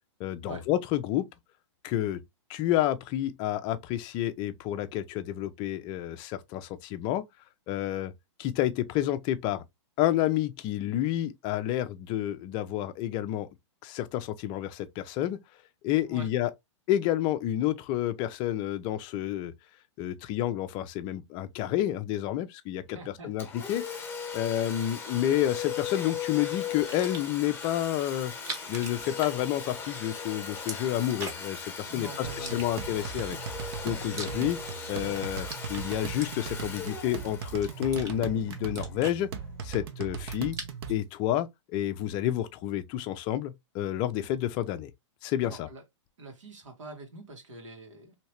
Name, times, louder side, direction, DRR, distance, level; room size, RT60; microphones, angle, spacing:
voice 1, 0.2-1.3 1.8-2.2 2.5-7.3 7.7-8.1 8.4-9.6 10.0-13.5 13.8-15.4 15.8-16.5 16.9-19.5 20.0-23.0 23.2-23.9 24.3-28.3 28.7-33.4 33.8-34.6 34.9-39.3 39.6-40.6 40.9-44.9 45.2-45.7, left 12 dB, 30° left, 0.4 m, -29 dB
voice 2, 22.9-23.3 31.9-32.6 45.4-45.8 46.2-48.1, right 2 dB, 85° right, 1.4 m, -44 dB
Domestic sounds home sounds, 23.4-38.9, left 6 dB, 10° left, 1.0 m, -38 dB
sound 1, 26.9-27.4 28.3-29.9 30.2-31.6 32.3-33.1 33.7-34.8 35.1-36.7 37.2-38.1 38.5-39.8 40.1-41.0, right 2 dB, 20° right, 1.0 m, -42 dB
sound 2, 32.2-41.0, right 6 dB, 55° right, 0.7 m, -38 dB
3.1 x 2.8 x 2.9 m
hypercardioid pair, 135°, 16 cm